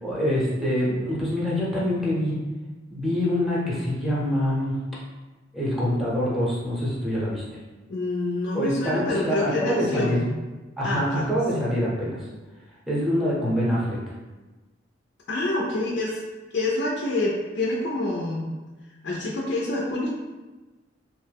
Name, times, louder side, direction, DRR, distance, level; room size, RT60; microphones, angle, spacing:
voice 1, 0.0-2.4 2.9-4.8 5.5-7.4 8.5-10.2 10.8-12.2 12.9-14.0, equal, ahead, -6 dB, 0.7 m, -25 dB
voice 2, 7.9-10.3 10.8-11.3 11.5-11.7 15.3-16.2 16.5-18.5 19.0-20.1, left 2 dB, 65° left, -3 dB, 0.4 m, -27 dB
2.9 x 2.1 x 3.3 m, 1.2 s
head